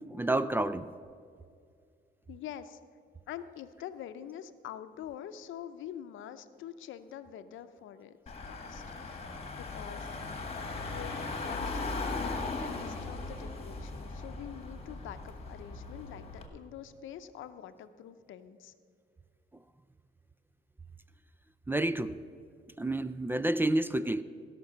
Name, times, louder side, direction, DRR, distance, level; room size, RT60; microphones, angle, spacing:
voice 1, 0.1-0.9 21.7-22.2 22.8-24.2, right 1 dB, 10° right, 14 dB, 0.4 m, -29 dB
voice 2, 2.3-2.8 3.3-8.2 8.5-9.3 9.5-10.2 10.8-18.7, left 10 dB, 80° left, 11 dB, 0.7 m, -45 dB
Car / Engine, 8.3-16.5, left 3 dB, 30° left, 1.7 m, -38 dB
16.0 x 6.0 x 6.6 m, 2.3 s
cardioid pair, 90°, 20 cm